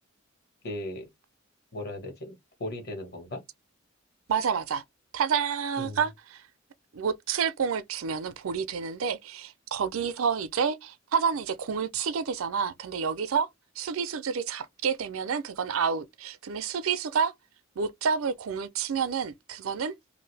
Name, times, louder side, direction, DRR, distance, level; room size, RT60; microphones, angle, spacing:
voice 1, 0.6-1.1 1.7-3.4 5.8-6.0, left 1 dB, 50° left, 1.4 m, -37 dB
voice 2, 4.3-4.8 5.1-6.4 6.9-13.5 13.8-17.3 17.8-19.9, right 6 dB, 80° right, 0.5 m, -29 dB
2.7 x 2.5 x 3.2 m
head